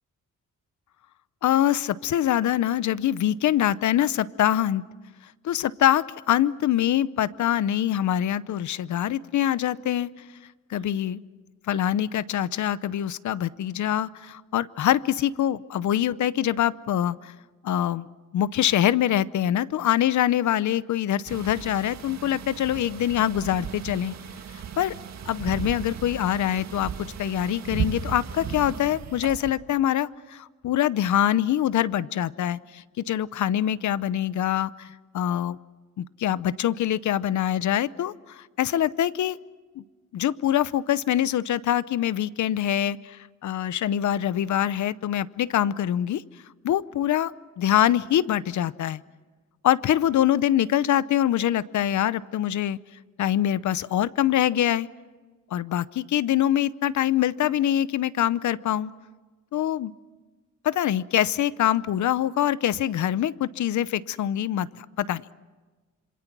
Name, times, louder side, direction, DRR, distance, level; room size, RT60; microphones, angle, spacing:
voice 1, 1.4-4.8 5.4-10.1 10.7-11.2 11.7-17.3 17.6-18.1 18.3-24.1 24.8-24.9 25.3-26.9 27.2-35.6 36.0-39.4 39.8-39.9 40.1-46.2 46.6-47.3 47.6-49.0 49.6-52.8 53.2-54.9 55.5-58.9 59.5-59.9 60.6-65.3, left 11 dB, 70° left, 17 dB, 0.8 m, -24 dB
sound 1, 21.3-29.5, right 7 dB, 60° right, 1.9 m, -35 dB
26.5 x 26.5 x 6.1 m, 1.3 s
wide cardioid pair, 135°, 30 cm